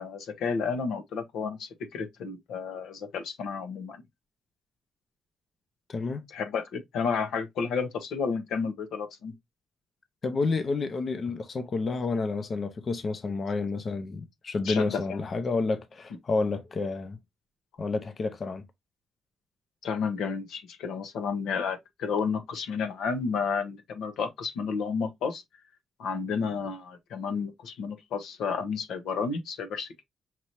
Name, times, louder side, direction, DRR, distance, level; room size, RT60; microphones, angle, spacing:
voice 1, 0.0-4.0 6.3-9.3 14.6-15.2 19.8-25.4 26.0-30.0, left 5 dB, 90° left, 1.0 m, -31 dB
voice 2, 5.9-6.3 10.2-17.2 17.8-18.6, left 3 dB, 45° left, 0.7 m, -30 dB
5.8 x 2.7 x 3.0 m
cardioid pair, 80°, 0 cm